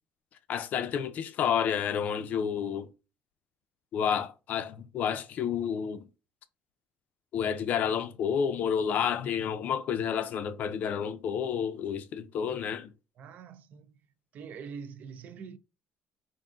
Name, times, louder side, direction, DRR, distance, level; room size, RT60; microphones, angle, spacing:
voice 1, 0.5-2.9 3.9-6.0 7.3-12.9, left 8 dB, 50° left, 0.4 m, -30 dB
voice 2, 13.2-13.9 14.3-15.6, right 6 dB, 50° right, 0.4 m, -44 dB
3.6 x 2.5 x 3.8 m
cardioid pair, 165°, 4 cm